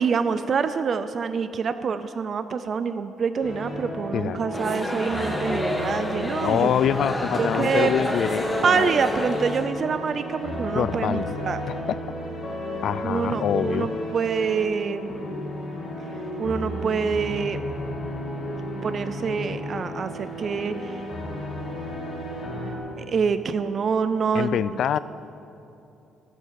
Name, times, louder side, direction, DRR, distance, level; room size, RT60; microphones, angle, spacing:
voice 1, 0.0-6.9 7.4-7.9 8.6-11.6 13.0-15.2 16.4-17.6 18.8-21.0 23.0-25.0, right 6 dB, 35° right, 11 dB, 0.4 m, -26 dB
sound 1, 3.4-22.7, left 1 dB, 30° left, 3.0 m, -33 dB
sound 2, 4.5-9.7, left 1 dB, 5° left, 1.3 m, -29 dB
voice 2, 6.4-8.9 10.7-11.3 11.9-12.0 12.8-13.9 24.3-25.0, left 9 dB, 50° left, 16 dB, 0.3 m, -25 dB
14.0 x 11.0 x 7.5 m, 2.9 s
cardioid pair, 170°, 0 cm